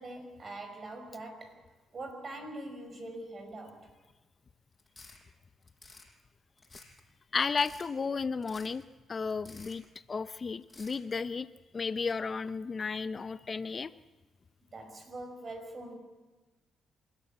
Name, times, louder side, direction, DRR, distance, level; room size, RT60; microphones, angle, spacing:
voice 1, 0.0-3.9 14.7-16.0, right 2 dB, 40° right, 5.3 m, -43 dB
sound 1, 4.8-5.2 5.6-6.1 6.6-7.0 7.4-7.9 8.4-8.8 9.3-9.9 10.6-11.0, left 3 dB, 20° left, 5.3 m, -52 dB
voice 2, 7.3-8.8 9.1-11.5 11.7-13.9, left 4 dB, 35° left, 0.6 m, -33 dB
26.5 x 13.5 x 8.7 m
cardioid pair, 90°, 0 cm